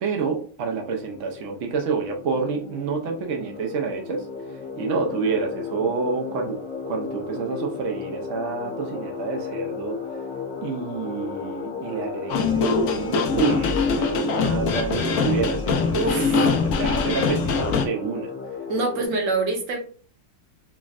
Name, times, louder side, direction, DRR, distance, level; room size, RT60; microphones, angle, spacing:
voice 1, 0.0-4.3 4.8-10.0 10.6-18.3, right 5 dB, 80° right, 2 dB, 0.6 m, -28 dB
sound 1, 0.6-19.1, left 5 dB, 45° left, 1.1 m, -35 dB
sound 2, 12.3-17.9, left 5 dB, 80° left, 0.7 m, -23 dB
voice 2, 15.9-16.4 18.7-19.8, right 3 dB, 50° right, 1 dB, 1.1 m, -25 dB
5.9 x 2.1 x 2.4 m, 0.43 s
omnidirectional pair, 2.0 m